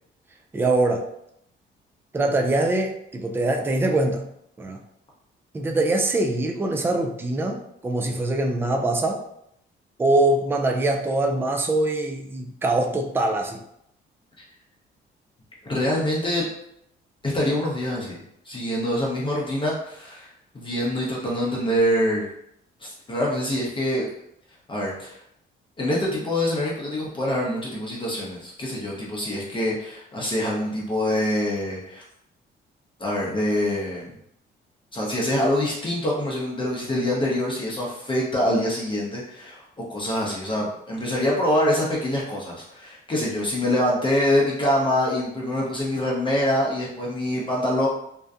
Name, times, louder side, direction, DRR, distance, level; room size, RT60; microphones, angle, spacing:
voice 1, 0.5-1.1 2.1-4.3 4.6-4.8 5.5-9.2 10.0-13.6, right 2 dB, 10° right, 3 dB, 0.3 m, -23 dB
voice 2, 15.6-16.5 17.2-22.3 22.8-24.1 24.7-25.2 25.8-32.0 33.0-34.1 34.9-47.9, left 1 dB, 25° left, -4 dB, 0.7 m, -25 dB
2.6 x 2.1 x 2.4 m, 0.75 s
cardioid pair, 90°, 20 cm